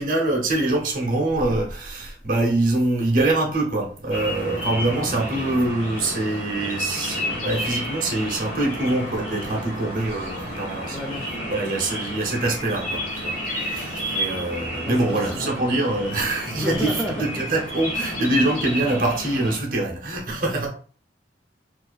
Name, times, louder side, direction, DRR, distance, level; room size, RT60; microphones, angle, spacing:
voice 1, 0.0-11.0 11.5-17.0 17.3-20.7, right 2 dB, 50° right, 0.7 m, -24 dB
sound 1, 4.1-19.6, equal, 40° left, 1.3 m, -31 dB
voice 2, 10.9-11.6 14.8-15.8 16.6-17.1 20.3-20.4, equal, 5° left, 0.3 m, -32 dB
2.4 x 2.3 x 2.3 m
head